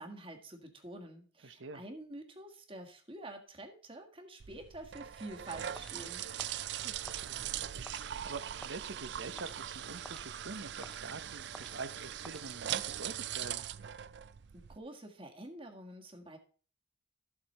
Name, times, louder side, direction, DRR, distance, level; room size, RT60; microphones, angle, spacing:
voice 1, 0.0-6.3 14.5-16.4, right 1 dB, 30° right, 1.5 m, -48 dB
voice 2, 1.4-1.8 6.5-13.7, right 3 dB, 80° right, 1.0 m, -46 dB
sound 1, 4.4-14.8, right 10 dB, 60° right, 0.4 m, -41 dB
sound 2, 5.8-13.0, equal, ahead, 0.6 m, -56 dB
13.5 x 7.5 x 4.3 m
head